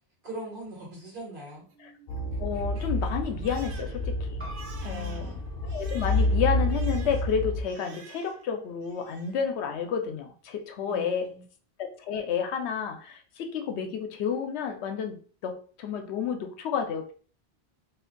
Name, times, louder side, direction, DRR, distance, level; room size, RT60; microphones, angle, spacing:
voice 1, 0.2-1.7 4.8-5.4 10.9-11.4, right 2 dB, 55° right, 1.6 m, -41 dB
Crying sobbing, 1.5-8.5 8.8-9.5, right 5 dB, 80° right, 0.9 m, -51 dB
sound 1, 2.1-7.6, left 1 dB, 55° left, 0.7 m, -29 dB
voice 2, 2.4-4.4 4.8-5.3 5.6-11.3 11.8-17.1, left 7 dB, 85° left, 0.9 m, -31 dB
sound 2, 4.4-9.6, equal, 15° right, 1.0 m, -51 dB
2.6 x 2.5 x 3.8 m
omnidirectional pair, 1.1 m